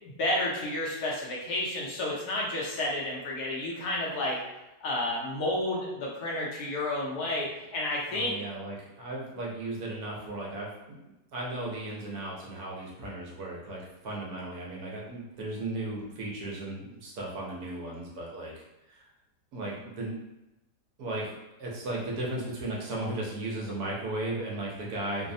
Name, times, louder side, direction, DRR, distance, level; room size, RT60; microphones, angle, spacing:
voice 1, 0.0-4.4 4.8-8.4, left 1 dB, 70° left, -3 dB, 1.1 m, -31 dB
voice 2, 8.1-18.6 18.9-19.0 19.5-20.1 21.0-25.3, right 2 dB, 70° right, -3 dB, 1.0 m, -36 dB
3.1 x 2.0 x 2.5 m, 0.97 s
omnidirectional pair, 1.9 m